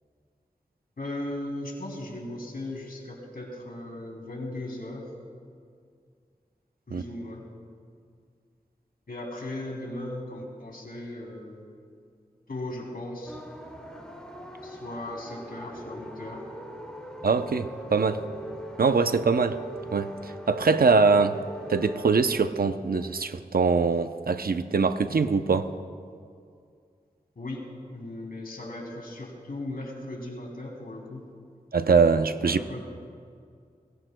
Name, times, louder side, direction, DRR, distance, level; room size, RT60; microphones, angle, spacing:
voice 1, 1.0-5.1 6.9-7.4 9.1-11.7 12.5-13.4 14.6-16.4 27.3-31.3 32.4-32.8, left 1 dB, 80° left, -1 dB, 3.1 m, -37 dB
sound 1, 13.3-22.1, equal, 5° left, 2.7 m, -41 dB
voice 2, 17.2-18.2 18.8-19.6 19.9-21.4 21.7-25.7 31.7-32.6, right 4 dB, 80° right, 10 dB, 0.6 m, -23 dB
21.5 x 21.0 x 2.2 m, 2.2 s
wide cardioid pair, 50°, 15 cm